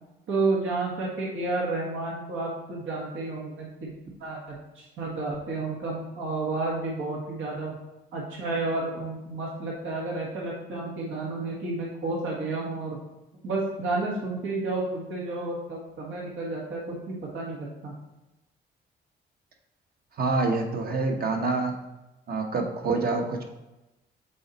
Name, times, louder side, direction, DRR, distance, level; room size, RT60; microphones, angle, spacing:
voice 1, 0.3-3.9 4.2-7.7 8.1-13.0 13.4-17.9, right 2 dB, 75° right, -3 dB, 1.7 m, -31 dB
voice 2, 20.2-21.7 22.3-23.4, right 3 dB, 50° right, 3 dB, 1.2 m, -26 dB
7.5 x 4.1 x 4.1 m, 0.99 s
cardioid pair, 90°, 20 cm